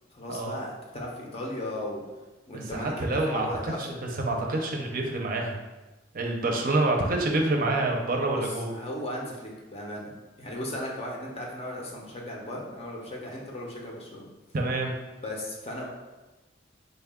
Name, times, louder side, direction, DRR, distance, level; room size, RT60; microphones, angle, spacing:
voice 1, 0.1-2.0 2.5-3.8 8.3-10.1 10.4-14.3 15.2-15.9, left 1 dB, 35° left, -1 dB, 0.6 m, -36 dB
voice 2, 2.5-3.9 4.2-5.6 6.1-8.7 14.5-14.9, right 2 dB, 50° right, 1 dB, 0.5 m, -27 dB
4.0 x 2.3 x 3.5 m, 1.1 s
head